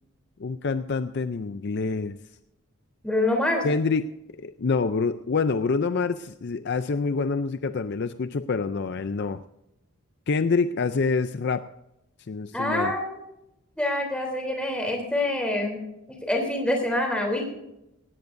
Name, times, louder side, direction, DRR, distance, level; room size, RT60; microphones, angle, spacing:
voice 1, 0.4-2.2 3.6-4.1 4.3-9.4 10.3-11.7 12.3-12.9, left 4 dB, 50° left, 11 dB, 0.4 m, -26 dB
voice 2, 3.0-3.6 12.5-13.1 13.8-15.8 16.2-17.5, left 1 dB, 5° left, 1 dB, 3.3 m, -25 dB
17.5 x 17.5 x 2.6 m, 0.87 s
head